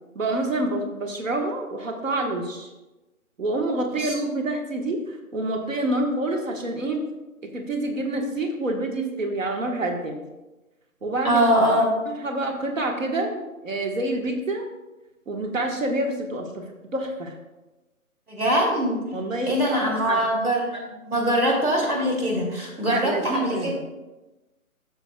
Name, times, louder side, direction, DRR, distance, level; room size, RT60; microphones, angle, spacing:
voice 1, 0.1-2.7 3.4-7.0 7.4-10.2 11.0-11.4 12.2-14.7 15.3-16.6 16.9-17.3 19.1-19.5 20.1-20.2 22.8-23.7, right 2 dB, 60° right, 3 dB, 1.5 m, -27 dB
voice 2, 11.2-11.9 18.3-19.0 19.5-23.8, equal, 75° right, -1 dB, 2.6 m, -23 dB
12.0 x 7.1 x 2.3 m, 1.1 s
figure-of-eight pair, 145°, 43 cm